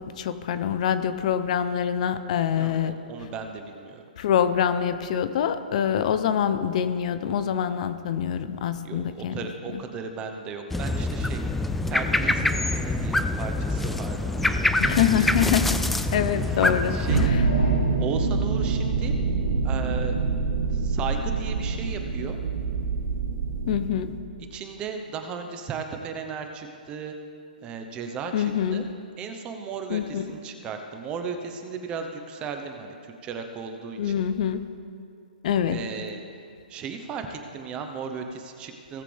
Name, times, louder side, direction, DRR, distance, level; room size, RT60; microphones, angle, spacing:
voice 1, 0.0-2.9 4.2-9.3 9.7-9.8 14.9-15.8 16.1-17.4 23.7-24.1 28.3-28.9 29.9-30.2 34.0-34.6 35.4-35.8, left 8 dB, 50° left, 11 dB, 0.7 m, -25 dB
voice 2, 2.6-4.0 8.8-11.4 11.9-15.3 16.9-17.2 18.0-19.1 19.6-20.1 20.7-22.4 24.5-27.1 27.6-28.9 29.2-34.1 35.7-36.2 36.7-39.0, right 5 dB, 20° right, 5 dB, 0.9 m, -35 dB
sound 1, 10.7-17.3, left 2 dB, 5° left, 0.3 m, -25 dB
sound 2, 16.7-18.8 19.3-19.4, left 2 dB, 85° left, 2.7 m, -40 dB
sound 3, 17.1-24.1, right 4 dB, 70° right, 1.4 m, -25 dB
18.0 x 7.5 x 3.4 m, 2.3 s
hypercardioid pair, 150°, 5 cm